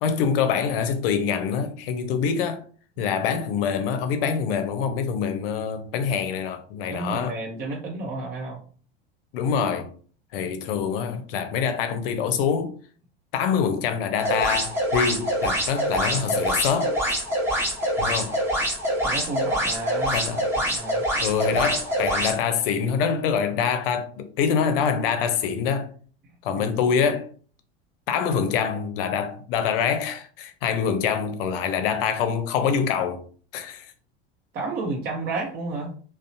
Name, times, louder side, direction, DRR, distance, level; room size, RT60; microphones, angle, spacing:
voice 1, 0.0-2.6 3.0-7.4 9.3-9.9 10.3-12.7 13.3-17.0 18.0-18.4 20.1-20.4 21.2-25.9 26.4-27.3 28.1-33.2 33.5-33.9, left 7 dB, 70° left, 0.6 m, -25 dB
voice 2, 6.8-8.6 19.0-20.2 20.6-21.0 26.5-26.8 34.5-35.9, right 3 dB, 35° right, 0.6 m, -31 dB
sound 1, 14.2-22.4, equal, 10° right, 1.0 m, -25 dB
2.7 x 2.0 x 2.6 m
hypercardioid pair, 100°, 29 cm